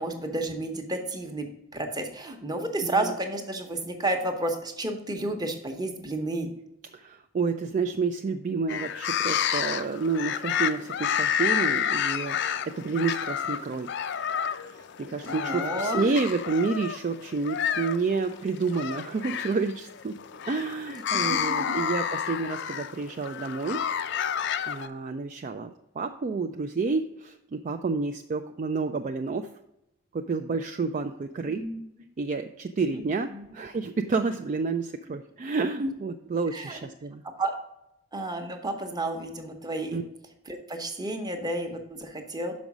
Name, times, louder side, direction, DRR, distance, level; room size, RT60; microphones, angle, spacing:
voice 1, 0.0-1.5 1.7-6.5 15.2-16.2 21.1-21.7 31.5-31.8 32.9-33.6 35.8-35.9 36.5-36.8 37.2-37.5 38.1-40.0 40.5-42.5, right 2 dB, 20° right, 5 dB, 0.9 m, -31 dB
voice 2, 2.8-3.1 6.9-13.9 14.7-20.2 20.5-23.8 24.4-29.5 30.1-31.6 32.2-37.2 39.9-40.0, right 4 dB, 40° right, 7 dB, 0.3 m, -30 dB
sound 1, 8.7-24.9, left 8 dB, 55° left, 0.4 m, -30 dB
6.2 x 5.2 x 6.0 m, 0.86 s
head